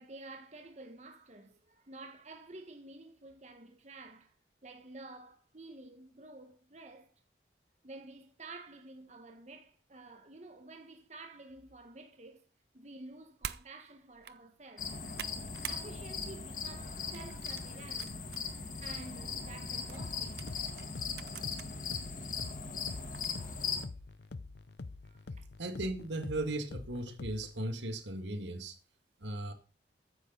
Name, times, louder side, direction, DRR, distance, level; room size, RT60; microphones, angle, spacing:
voice 1, 0.0-4.3 4.6-7.1 7.8-12.4 12.7-14.9 15.7-18.2 18.8-20.5 25.0-25.4, right 2 dB, 40° right, 1.6 m, -51 dB
sound 1, 13.4-13.7 14.1-14.4 14.8-15.8 16.2-16.5 17.1-18.4 18.9-19.0 19.9-21.7 22.2-22.3 23.1-23.5, right 9 dB, 60° right, 0.7 m, -45 dB
sound 2, 14.8-23.8, left 5 dB, 45° left, 1.8 m, -39 dB
sound 3, 20.0-27.7, left 3 dB, 65° left, 0.6 m, -46 dB
voice 2, 25.6-28.8 29.2-29.5, right 1 dB, 80° right, 1.9 m, -37 dB
14.0 x 9.9 x 4.1 m
head